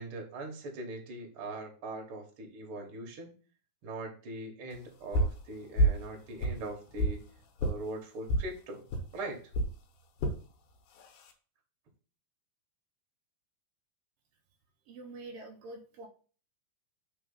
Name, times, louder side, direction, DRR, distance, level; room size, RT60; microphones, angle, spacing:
voice 1, 0.0-3.3 3.8-7.2 7.6-8.8 9.1-9.4, right 2 dB, 50° right, 2 dB, 1.7 m, -41 dB
sound 1, 5.1-5.4 5.8-6.1 6.4-7.2 7.6-7.8 8.3-8.5 8.9-9.1 9.5-9.7 10.2-10.4 11.0-11.3, right 1 dB, 80° left, 2.5 m, -28 dB
voice 2, 14.9-16.1, right 2 dB, 75° right, 2 dB, 1.4 m, -46 dB
4.4 x 4.4 x 5.4 m, 0.38 s
omnidirectional pair, 3.9 m